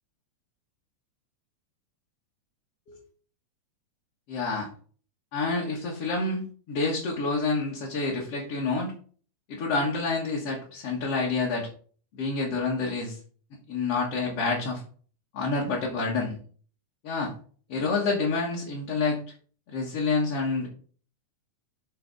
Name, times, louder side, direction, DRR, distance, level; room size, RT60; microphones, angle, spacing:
voice 1, 4.3-4.7 5.3-8.9 9.5-11.7 12.1-13.2 13.7-14.8 15.3-16.4 17.0-17.3 17.7-19.2 19.7-20.7, left 3 dB, 55° left, -3 dB, 2.2 m, -28 dB
8.3 x 3.8 x 5.2 m, 0.44 s
omnidirectional pair, 3.6 m